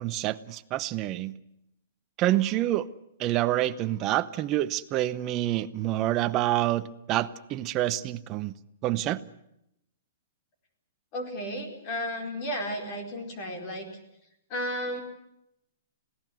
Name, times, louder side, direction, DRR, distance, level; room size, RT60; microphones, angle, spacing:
voice 1, 0.0-1.3 2.2-2.9 3.2-8.5 8.8-9.2, right 14 dB, 25° right, 12 dB, 0.8 m, -27 dB
voice 2, 11.1-13.9 14.5-15.0, equal, 30° left, 4 dB, 4.5 m, -33 dB
26.5 x 17.5 x 7.8 m, 0.80 s
hypercardioid pair, 170°, 0 cm